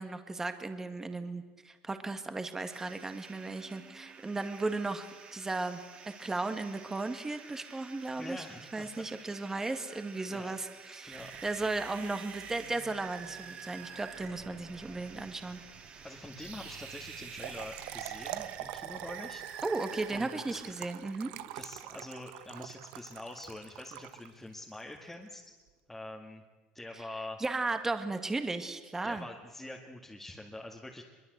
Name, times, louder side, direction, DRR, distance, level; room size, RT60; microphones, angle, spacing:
voice 1, 0.0-5.1 5.3-8.5 8.7-15.6 19.6-21.3 27.4-29.3, right 3 dB, 15° right, 8 dB, 1.9 m, -35 dB
sound 1, 2.7-18.6, right 5 dB, 35° right, 3.1 m, -52 dB
voice 2, 8.2-9.1 10.3-10.5 11.1-11.4 16.0-19.4 20.1-20.6 21.5-25.4 25.9-26.4 26.7-27.4 29.0-31.0, left 1 dB, 5° left, -1 dB, 2.2 m, -45 dB
sound 2, 11.0-20.9, right 7 dB, 55° right, 5.0 m, -47 dB
Trickle dribble / Fill (with liquid), 17.2-24.6, right 14 dB, 80° right, 1.1 m, -44 dB
23.0 x 23.0 x 8.2 m, 1.4 s
cardioid pair, 125°, 3 cm